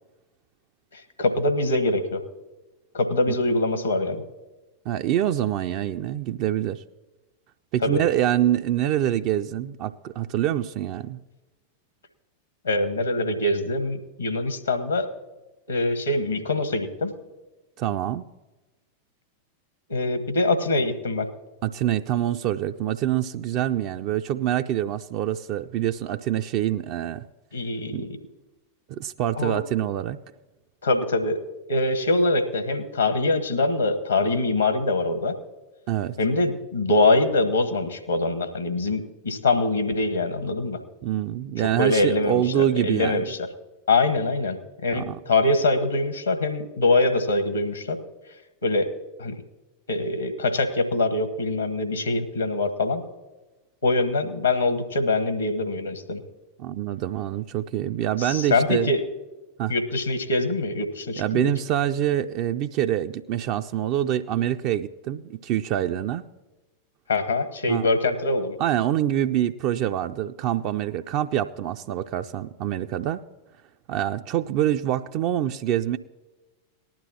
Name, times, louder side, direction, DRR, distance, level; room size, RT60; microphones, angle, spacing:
voice 1, 0.9-2.2 2.9-4.2 7.8-8.0 12.6-15.1 15.7-17.1 19.9-21.3 27.5-28.2 29.3-29.6 30.8-31.4 31.7-35.4 36.2-40.8 41.6-43.5 43.9-48.0 48.6-48.9 49.2-49.4 49.9-53.0 53.8-56.2 58.2-59.0 59.7-61.5 67.1-68.6, left 2 dB, 75° left, 8 dB, 1.2 m, -24 dB
voice 2, 4.9-6.8 7.7-11.2 17.8-18.2 21.6-27.2 27.9-28.1 28.9-30.2 35.9-36.2 41.0-43.2 44.9-45.2 56.6-58.9 59.6-59.7 61.2-66.2 67.7-67.9 68.6-73.2 73.9-76.0, right 12 dB, 45° right, 7 dB, 0.4 m, -25 dB
19.0 x 12.0 x 2.8 m, 1.1 s
figure-of-eight pair, 90°, 0 cm